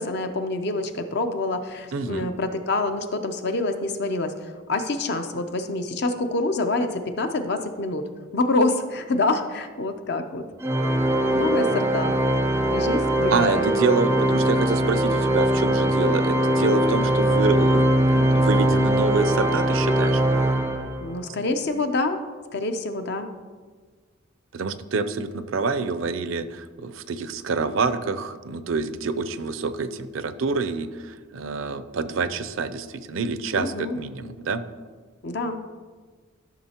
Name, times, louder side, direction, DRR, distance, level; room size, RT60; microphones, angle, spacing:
voice 1, 0.0-4.3 4.7-8.1 8.3-10.4 11.3-12.1 12.7-13.7 21.0-22.2 22.5-23.3 33.5-34.0 35.2-35.6, left 2 dB, 55° left, 7 dB, 0.7 m, -26 dB
voice 2, 1.9-2.3 13.3-20.2 24.5-34.6, right 4 dB, 70° right, 12 dB, 0.5 m, -27 dB
Organ, 10.6-21.2, right 1 dB, 15° right, 0.4 m, -21 dB
13.0 x 6.3 x 2.9 m, 1.5 s
head